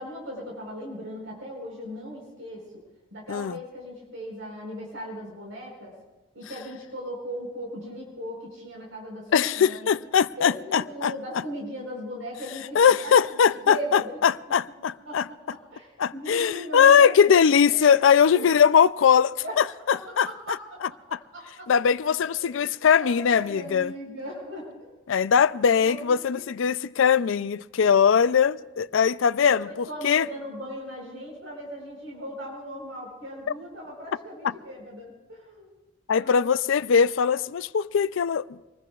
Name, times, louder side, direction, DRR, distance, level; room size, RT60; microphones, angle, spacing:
voice 1, 0.0-2.6 3.1-5.9 6.3-9.9 10.4-14.2 15.0-17.2 17.7-18.0 18.3-18.5 19.4-20.8 21.1-21.7 22.1-22.6 22.9-25.0 25.8-26.1 29.4-35.7 36.1-36.5, equal, 85° right, 4.4 m, -38 dB
voice 2, 9.3-11.4 12.7-15.3 16.0-20.6 21.1-21.2 21.7-23.9 25.1-29.7 30.0-30.3 36.1-38.5, left 7 dB, 80° left, 0.4 m, -21 dB
25.5 x 20.0 x 2.4 m
head